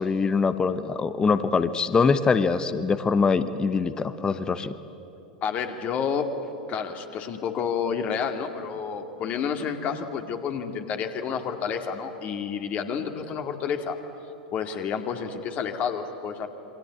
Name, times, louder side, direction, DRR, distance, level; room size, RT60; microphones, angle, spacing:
voice 1, 0.0-4.7, left 5 dB, 15° left, 13 dB, 1.0 m, -23 dB
voice 2, 5.4-6.3 6.7-14.0 14.5-16.5, left 7 dB, 35° left, 5 dB, 2.3 m, -30 dB
27.5 x 24.0 x 8.4 m, 2.9 s
figure-of-eight pair, 90°, 5 cm